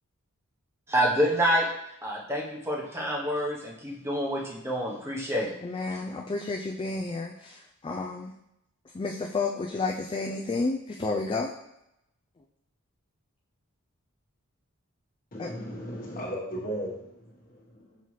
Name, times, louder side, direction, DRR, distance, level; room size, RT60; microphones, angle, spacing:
voice 1, 0.9-1.7 2.0-5.5, equal, 10° right, -2 dB, 0.9 m, -27 dB
voice 2, 5.6-8.3 8.9-11.5 15.4-15.5, left 3 dB, 25° left, 0 dB, 0.4 m, -31 dB
voice 3, 15.3-18.0, equal, 40° left, -1 dB, 1.3 m, -37 dB
5.7 x 5.5 x 3.2 m, 0.83 s
head